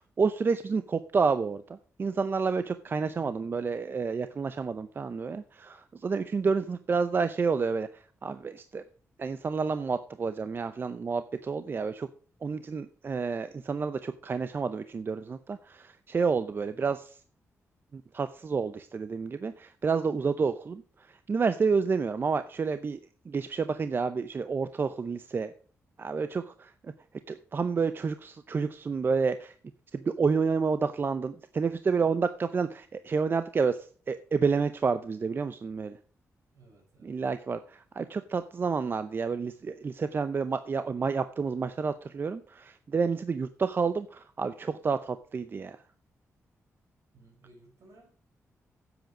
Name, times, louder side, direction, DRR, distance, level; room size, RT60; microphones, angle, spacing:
voice 1, 0.0-8.8 9.2-12.1 12.4-17.2 17.9-20.8 21.1-23.0 23.3-25.5 26.0-26.9 27.3-29.5 29.9-36.0 37.0-45.8, right 5 dB, 40° right, 11 dB, 0.6 m, -29 dB
voice 2, 3.2-3.5 36.5-37.2 47.1-48.1, right 2 dB, 75° right, 2 dB, 5.2 m, -57 dB
10.0 x 8.0 x 6.1 m, 0.42 s
cardioid pair, 105°, 6 cm